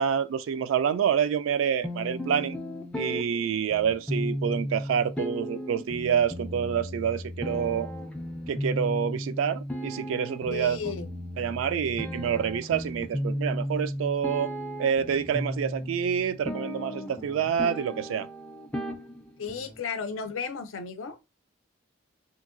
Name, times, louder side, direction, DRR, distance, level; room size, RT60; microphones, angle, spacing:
voice 1, 0.0-2.6 3.0-7.9 8.5-10.8 11.4-14.5 14.8-18.3, right 8 dB, 85° right, 0.3 m, -27 dB
sound 1, 1.8-19.8, equal, 5° left, 0.3 m, -35 dB
voice 2, 10.5-11.1 19.4-21.2, left 5 dB, 85° left, 0.5 m, -34 dB
2.9 x 2.6 x 2.5 m
head